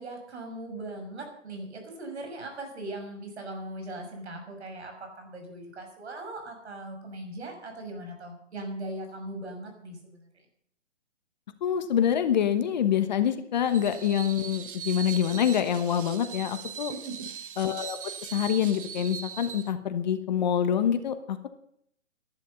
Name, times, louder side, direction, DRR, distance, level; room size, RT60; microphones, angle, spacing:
voice 1, 0.0-10.3 16.9-17.3, right 2 dB, 60° right, 4 dB, 6.3 m, -39 dB
voice 2, 11.6-16.9 17.6-18.0 18.3-21.5, left 9 dB, 35° left, 9 dB, 1.1 m, -26 dB
Screech, 13.7-19.7, right 8 dB, 45° right, 0.9 m, -40 dB
14.0 x 11.5 x 6.9 m, 0.70 s
hypercardioid pair, 150°, 37 cm